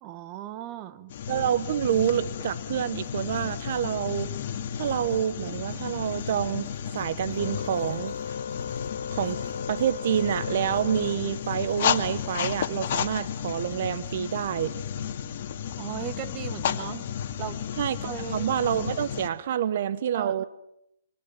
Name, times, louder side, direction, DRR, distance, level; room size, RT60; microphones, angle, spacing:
voice 1, 0.0-1.1 15.8-17.1 17.4-17.7 18.0-18.5 20.1-20.5, right 12 dB, 30° right, 13 dB, 1.3 m, -37 dB
sound 1, 1.1-19.3, left 9 dB, 50° left, 2.3 m, -33 dB
voice 2, 1.3-4.3 4.7-6.7 6.9-8.1 9.1-9.4 9.7-14.7 17.8-20.4, right 10 dB, 55° right, 15 dB, 1.0 m, -27 dB
sound 2, 4.8-11.3, right 5 dB, 80° right, 5.2 m, -56 dB
Organ, 7.3-11.9, left 7 dB, 85° left, 2.3 m, -37 dB
30.0 x 25.0 x 7.4 m, 0.80 s
hypercardioid pair, 155°, 0 cm